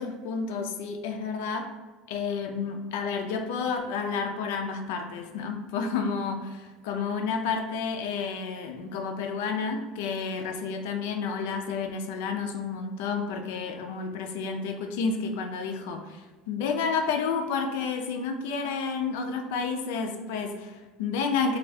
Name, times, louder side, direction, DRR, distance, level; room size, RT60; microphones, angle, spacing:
voice 1, 0.0-1.7 2.1-21.6, left 5 dB, 85° left, 5 dB, 0.3 m, -30 dB
3.1 x 2.3 x 2.6 m, 1.3 s
cardioid pair, 175°, 0 cm